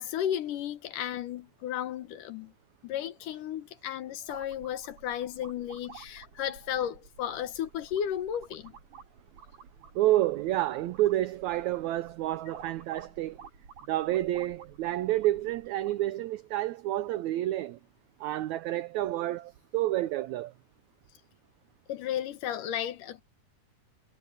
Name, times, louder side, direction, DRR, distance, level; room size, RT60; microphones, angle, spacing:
voice 1, 0.0-2.5 2.8-8.7 21.9-23.2, left 10 dB, 70° left, 2.7 m, -34 dB
sound 1, 4.3-16.1, right 6 dB, 60° right, 5.6 m, -52 dB
voice 2, 9.9-13.4 13.9-17.8 18.2-20.5, right 15 dB, 90° right, 1.6 m, -29 dB
omnidirectional pair, 4.0 m